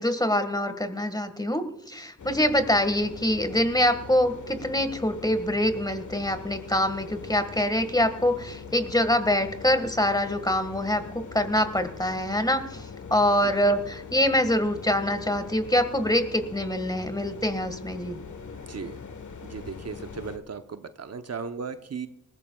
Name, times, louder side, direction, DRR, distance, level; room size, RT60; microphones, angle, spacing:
voice 1, 0.0-18.2, left 1 dB, 10° left, 9 dB, 1.7 m, -25 dB
sound 1, 2.2-20.4, left 5 dB, 65° left, 1.3 m, -41 dB
voice 2, 18.7-19.0 19.4-22.1, right 5 dB, 55° right, 8 dB, 0.9 m, -36 dB
19.5 x 15.0 x 2.3 m, 0.83 s
cardioid pair, 50°, 31 cm